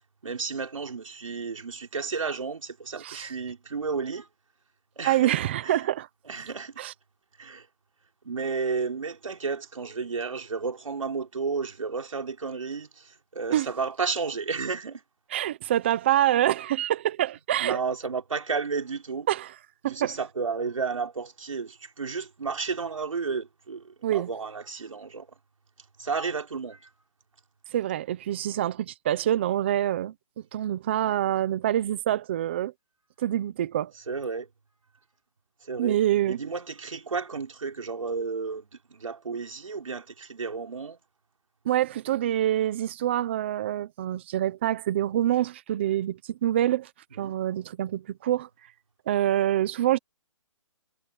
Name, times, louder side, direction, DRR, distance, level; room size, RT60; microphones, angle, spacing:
voice 1, 0.2-4.3 5.0-5.3 5.6-5.8 6.3-6.7 7.4-7.7 8.2-15.0 17.6-19.3 19.9-25.3 26.0-26.9 34.1-34.5 35.6-36.0 36.3-41.0 47.2-47.4, right 5 dB, 90° right, 4.0 m, -32 dB
voice 2, 3.0-3.3 5.0-6.1 6.8-6.9 13.5-13.7 15.3-17.8 19.3-19.6 19.8-20.2 24.0-24.3 27.7-30.1 30.5-32.7 33.2-33.9 35.8-36.4 41.6-46.9 47.2-48.5 49.1-50.0, right 12 dB, 20° right, 0.9 m, -26 dB
hypercardioid pair, 175°, 16 cm